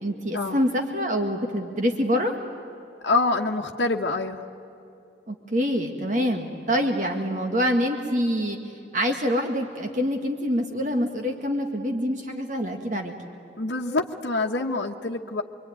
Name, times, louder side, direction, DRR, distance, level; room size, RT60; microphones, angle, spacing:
voice 1, 0.0-2.3 5.3-8.6 8.9-13.1, equal, 45° right, 3 dB, 1.8 m, -25 dB
voice 2, 3.0-4.5 13.6-15.4, left 3 dB, 80° left, 0 dB, 1.1 m, -26 dB
26.0 x 23.5 x 9.5 m, 2.8 s
head